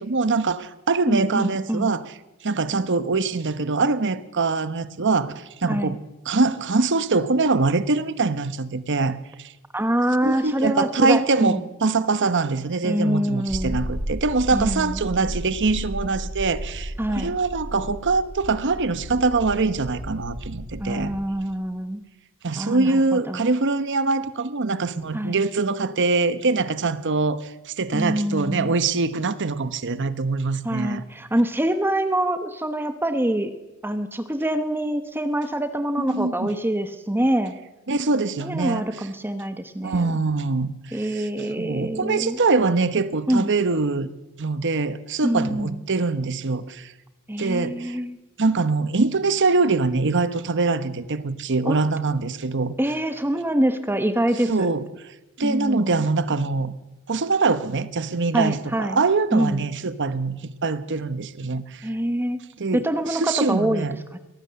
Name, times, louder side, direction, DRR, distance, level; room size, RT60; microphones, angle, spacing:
voice 1, 0.0-2.1 2.4-9.5 10.2-21.1 22.4-31.0 36.0-36.5 37.9-38.9 39.8-41.3 41.6-44.1 44.4-46.9 47.4-48.0 48.4-52.7 54.5-54.9 55.4-56.7 57.1-61.9 62.6-64.0, right 3 dB, 55° right, 14 dB, 1.0 m, -23 dB
voice 2, 1.1-1.9 5.7-6.0 9.7-11.6 12.8-13.8 14.5-15.0 17.0-17.3 20.8-22.0 22.6-23.5 25.1-25.4 27.9-28.7 30.6-33.5 33.8-37.5 38.4-40.1 40.9-42.4 43.3-43.5 45.2-45.8 47.3-48.2 51.6-51.8 52.8-54.7 55.4-56.0 58.3-59.0 59.3-59.6 61.8-62.4 62.7-63.8 64.1-64.2, right 1 dB, 10° right, 9 dB, 1.0 m, -25 dB
sound 1, 13.5-21.2, equal, 85° right, 5.3 m, -33 dB
22.5 x 18.0 x 6.9 m, 1.0 s
head